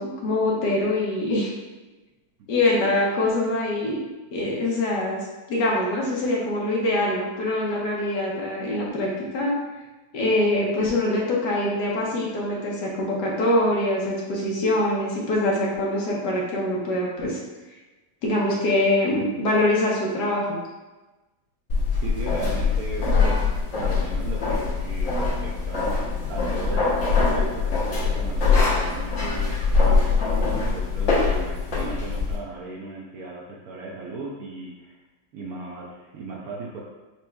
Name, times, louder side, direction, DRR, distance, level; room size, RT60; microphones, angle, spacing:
voice 1, 0.0-1.5 2.5-4.0 4.3-9.5 10.1-17.4 18.2-20.6, left 1 dB, 70° left, -3 dB, 1.4 m, -24 dB
sound 1, 21.7-32.4, left 4 dB, 50° left, 1.2 m, -23 dB
voice 2, 22.0-35.0 35.3-36.8, right 2 dB, 70° right, -2 dB, 0.9 m, -37 dB
5.9 x 3.0 x 2.2 m, 1.1 s
omnidirectional pair, 2.0 m